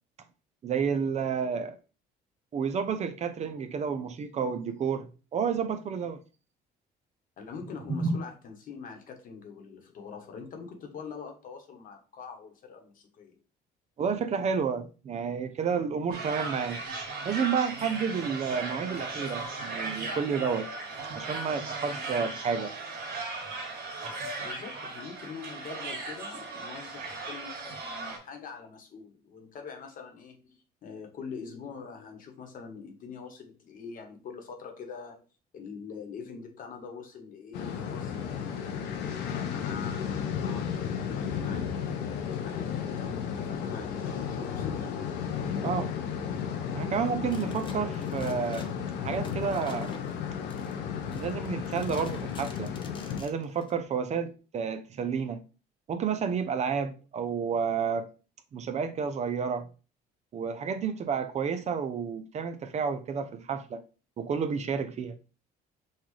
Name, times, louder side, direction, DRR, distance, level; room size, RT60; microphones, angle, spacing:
voice 1, 0.6-1.8 2.5-6.2 7.9-8.2 14.0-16.8 17.2-20.7 21.1-22.7 45.6-45.9 46.7-48.7 49.0-49.9 51.1-52.7 53.2-55.4 55.9-58.1 58.5-59.7 60.3-63.8 64.2-65.1, right 6 dB, 40° right, 0.5 m, -30 dB
voice 2, 7.4-13.4 24.4-35.2 35.5-42.0 42.4-45.2, left 5 dB, 55° left, 1.1 m, -44 dB
sound 1, 16.1-28.2, right 3 dB, 60° right, 1.7 m, -37 dB
sound 2, 37.5-53.2, left 7 dB, 90° left, 0.6 m, -33 dB
sound 3, 47.3-53.7, left 3 dB, 30° left, 0.7 m, -48 dB
5.6 x 2.4 x 3.1 m
cardioid pair, 110°, 17 cm